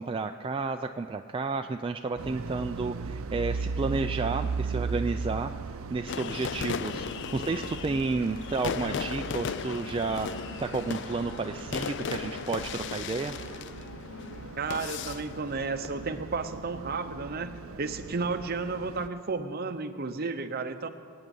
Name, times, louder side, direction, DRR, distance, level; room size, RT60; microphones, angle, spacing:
voice 1, 0.0-5.5 5.9-7.1 7.3-10.3 10.6-13.4, right 3 dB, 25° right, 5 dB, 0.3 m, -31 dB
sound 1, 2.2-19.1, right 4 dB, 80° right, 0.6 m, -38 dB
sound 2, 6.1-16.2, left 6 dB, 60° left, 0.4 m, -37 dB
sound 3, 8.2-13.6, left 1 dB, 80° left, 2.9 m, -50 dB
voice 2, 14.6-20.9, right 4 dB, 45° right, 9 dB, 0.8 m, -33 dB
25.0 x 8.9 x 5.4 m, 2.2 s
head